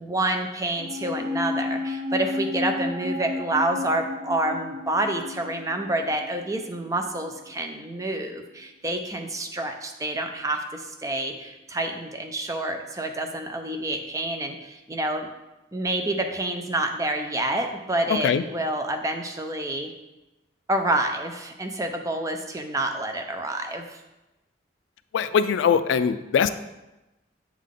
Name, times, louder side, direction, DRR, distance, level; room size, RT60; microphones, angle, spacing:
voice 1, 0.0-15.3 15.7-19.9 20.7-24.0, right 1 dB, 20° right, 4 dB, 0.5 m, -28 dB
sound 1, 0.8-7.3 7.6-7.7, left 3 dB, 55° right, 1.5 m, -32 dB
voice 2, 25.1-26.5, left 7 dB, 80° left, 12 dB, 0.3 m, -21 dB
7.2 x 3.6 x 3.8 m, 1.0 s
head